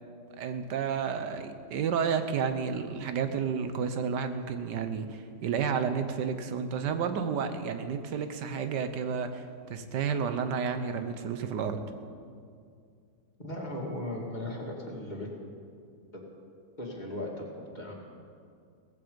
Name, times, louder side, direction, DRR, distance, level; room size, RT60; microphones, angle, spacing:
voice 1, 0.4-11.8, right 6 dB, 85° right, 9 dB, 1.6 m, -31 dB
voice 2, 13.4-15.3 16.1-16.2 16.8-17.9, left 1 dB, 25° left, -2 dB, 2.5 m, -37 dB
17.5 x 15.0 x 5.2 m, 2.3 s
omnidirectional pair, 1.8 m